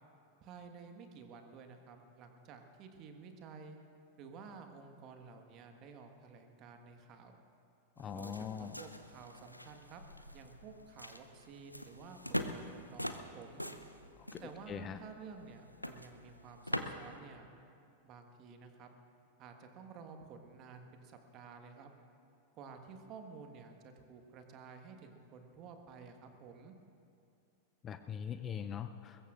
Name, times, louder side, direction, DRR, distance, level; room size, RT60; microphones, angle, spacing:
voice 1, 0.4-3.8 4.2-7.4 8.1-10.0 10.3-13.6 14.4-17.5 18.0-18.9 19.4-21.9 22.5-26.7, right 5 dB, 35° right, 5 dB, 1.5 m, -52 dB
sound 1, 8.0-17.2, equal, 90° left, 0.7 m, -44 dB
voice 2, 8.0-8.8 14.3-14.4 14.7-15.0 27.8-29.2, left 8 dB, 25° left, 10 dB, 0.6 m, -41 dB
22.5 x 21.5 x 2.5 m, 2.5 s
figure-of-eight pair, 90°, 0 cm